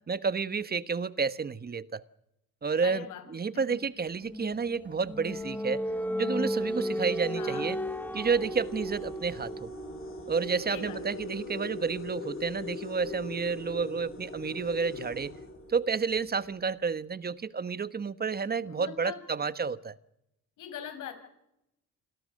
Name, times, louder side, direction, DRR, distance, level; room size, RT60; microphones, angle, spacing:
voice 1, 0.0-2.0 2.6-3.0 3.3-5.8 6.2-7.8 8.1-9.7 10.3-15.3 15.7-20.0, right 5 dB, 30° right, 1.2 m, -30 dB
voice 2, 2.8-3.2 3.7-4.1 7.4-7.7 10.7-11.0 18.6-19.2 20.6-21.1, left 8 dB, 90° left, 5.1 m, -41 dB
sound 1, 4.3-15.8, equal, 5° left, 1.4 m, -37 dB
sound 2, 4.8-5.1 5.9-6.0 6.5-16.2, left 3 dB, 45° left, 7.2 m, -43 dB
27.5 x 17.5 x 6.5 m
cardioid pair, 90°, 30 cm